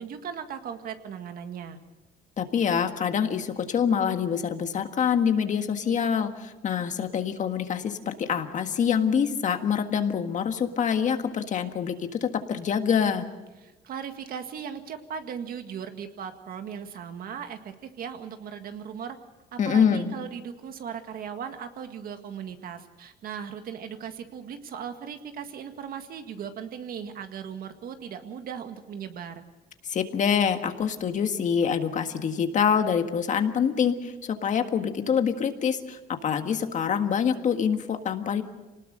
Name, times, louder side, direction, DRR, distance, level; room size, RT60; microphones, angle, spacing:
voice 1, 0.0-1.8 13.6-19.2 19.5-29.4, right 7 dB, 60° right, 7 dB, 1.8 m, -38 dB
voice 2, 2.4-13.3 19.6-20.1 29.8-38.4, left 7 dB, 45° left, 7 dB, 1.7 m, -25 dB
25.5 x 19.0 x 6.6 m, 1.1 s
cardioid pair, 110°, 17 cm